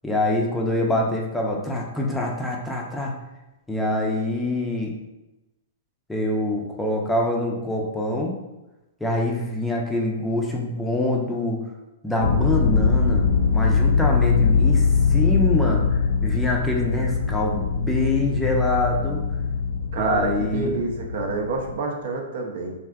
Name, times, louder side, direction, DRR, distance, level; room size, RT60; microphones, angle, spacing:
voice 1, 0.0-3.1 3.7-4.9 6.1-8.4 9.0-11.6 12.0-13.3 13.5-14.8 15.1-19.2 20.0-20.8, left 1 dB, 5° left, -1 dB, 0.5 m, -25 dB
sound 1, 12.2-21.7, left 5 dB, 70° left, 0.5 m, -22 dB
voice 2, 19.9-22.7, right 3 dB, 60° right, 2 dB, 0.6 m, -27 dB
3.4 x 2.5 x 2.3 m, 0.99 s
hypercardioid pair, 130°, 0 cm